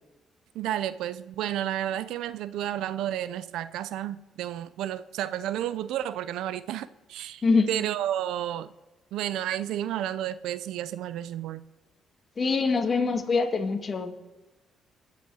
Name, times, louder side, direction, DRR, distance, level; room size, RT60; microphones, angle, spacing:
voice 1, 0.5-7.4 7.7-8.7 9.1-11.6, right 11 dB, 85° right, 0.5 m, -31 dB
voice 2, 12.4-14.3, left 4 dB, 40° left, 1.9 m, -24 dB
22.0 x 8.4 x 4.8 m
cardioid pair, 90°, 0 cm